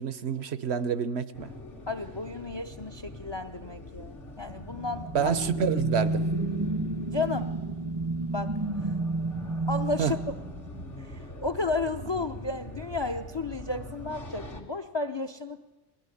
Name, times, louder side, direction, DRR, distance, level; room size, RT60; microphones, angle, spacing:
voice 1, 0.0-1.5 5.1-6.3 10.0-10.1, right 7 dB, 65° right, 14 dB, 1.2 m, -28 dB
sound 1, 1.3-14.6, left 1 dB, 75° left, 2.9 m, -42 dB
voice 2, 1.9-5.3 7.1-7.6 8.3-8.5 9.7-10.2 11.0-15.6, left 3 dB, 25° left, 9 dB, 0.7 m, -33 dB
sound 2, 4.6-11.1, right 2 dB, 25° right, 0.8 m, -31 dB
21.0 x 16.5 x 9.9 m, 1.2 s
omnidirectional pair, 1.2 m